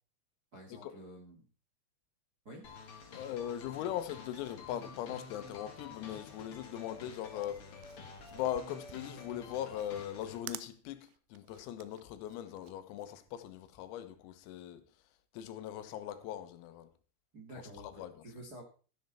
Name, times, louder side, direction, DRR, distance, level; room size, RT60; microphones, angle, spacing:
voice 1, 0.5-1.4 2.4-2.7 6.9-7.0 17.3-18.6, right 1 dB, 35° right, 1.6 m, -50 dB
sound 1, 2.6-10.4, left 4 dB, 70° left, 1.3 m, -50 dB
voice 2, 3.2-8.0 8.3-14.8 15.3-16.9 17.8-18.2, left 11 dB, 90° left, 3.9 m, -40 dB
sound 2, 7.4-13.9, right 16 dB, 85° right, 3.4 m, -52 dB
13.5 x 11.5 x 4.2 m
omnidirectional pair, 6.0 m